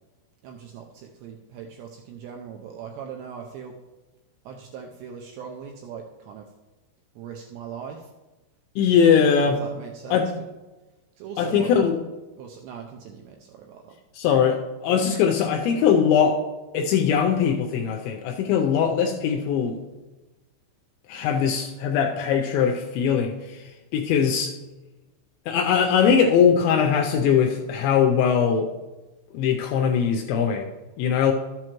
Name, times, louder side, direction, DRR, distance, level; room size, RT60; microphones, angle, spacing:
voice 1, 0.4-3.8 4.5-6.5 7.2-8.1 9.6-10.5 11.2-11.7 12.4-14.0, right 7 dB, 85° right, 1 dB, 2.5 m, -40 dB
voice 2, 8.8-9.6 10.1-10.3 11.4-12.0 14.2-16.5 16.7-19.8 21.1-24.5 25.5-28.7 29.3-30.7 31.0-31.3, left 7 dB, 85° left, 3 dB, 2.7 m, -21 dB
13.0 x 7.8 x 3.0 m, 1.1 s
omnidirectional pair, 5.7 m